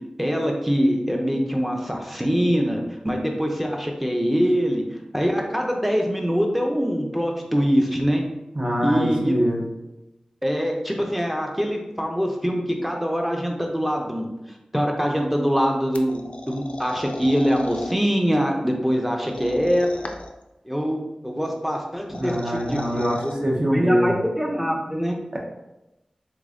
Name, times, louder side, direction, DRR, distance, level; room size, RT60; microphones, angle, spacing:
voice 1, 0.2-8.3 8.8-9.4 10.4-14.3 14.7-20.0 20.6-23.4 23.7-25.2, equal, 5° right, 1 dB, 0.6 m, -23 dB
voice 2, 8.5-9.6 22.1-24.1 25.3-25.4, equal, 40° right, -1 dB, 0.8 m, -23 dB
sound 1, 15.9-17.9 19.3-20.4 21.9-23.3, left 2 dB, 65° left, 0.3 m, -37 dB
3.4 x 3.0 x 2.6 m, 0.95 s
cardioid pair, 45°, 2 cm